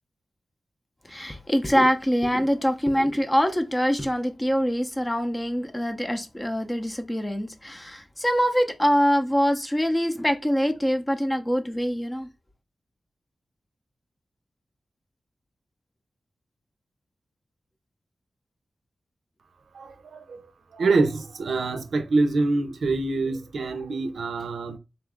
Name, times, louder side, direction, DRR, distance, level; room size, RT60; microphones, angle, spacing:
voice 1, 1.0-12.3, equal, 15° left, 0.6 m, -24 dB
voice 2, 19.7-20.4 20.7-24.8, right 3 dB, 85° right, 0.5 m, -25 dB
3.9 x 2.4 x 3.4 m
cardioid pair, 65°, 0 cm